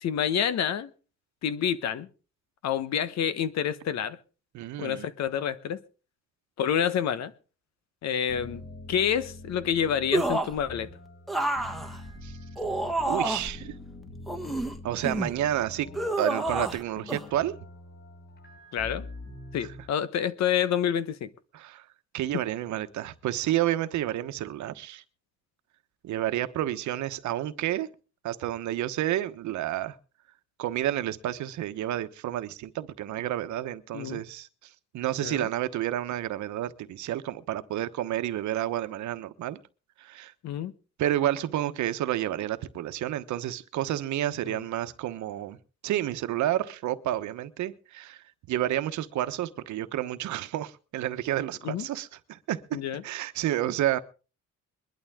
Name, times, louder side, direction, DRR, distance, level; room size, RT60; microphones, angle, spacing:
voice 1, 0.0-0.9 1.4-2.1 2.6-4.2 4.8-5.8 6.6-7.3 8.0-8.6 8.9-10.9 18.7-19.1 19.5-21.3 33.9-34.2 35.2-35.5 40.4-40.7 44.4-44.6 51.6-51.9 52.7-53.0, left 9 dB, 65° left, 1.2 m, -28 dB
voice 2, 4.5-5.1 12.2-12.3 13.1-13.7 14.8-15.9 16.2-17.5 21.5-21.8 22.1-25.0 26.0-27.9 28.2-29.9 30.6-34.5 34.9-39.6 40.0-40.3 41.0-45.6 45.8-48.2 48.5-54.0, right 13 dB, 80° right, 1.1 m, -30 dB
sound 1, 8.3-19.9, left 1 dB, 35° left, 6.9 m, -45 dB
sound 2, 10.1-10.6 11.3-13.6 14.3-15.4 15.9-16.8 17.1-17.2, right 2 dB, ahead, 1.3 m, -29 dB
22.0 x 11.5 x 3.7 m
cardioid pair, 140°, 29 cm